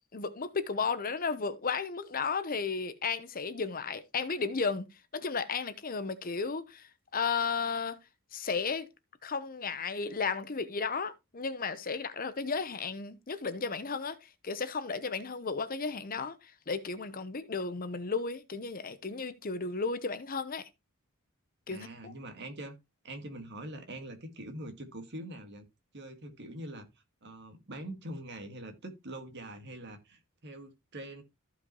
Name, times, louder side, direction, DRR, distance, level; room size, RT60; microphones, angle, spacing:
voice 1, 0.1-4.8 5.1-8.0 8.3-8.9 9.2-20.7 21.7-22.1, left 5 dB, 40° left, 0.8 m, -34 dB
voice 2, 21.7-22.8 23.0-25.7 25.9-26.9 27.2-31.2, right 1 dB, 50° right, 1.9 m, -43 dB
14.5 x 5.2 x 3.0 m
head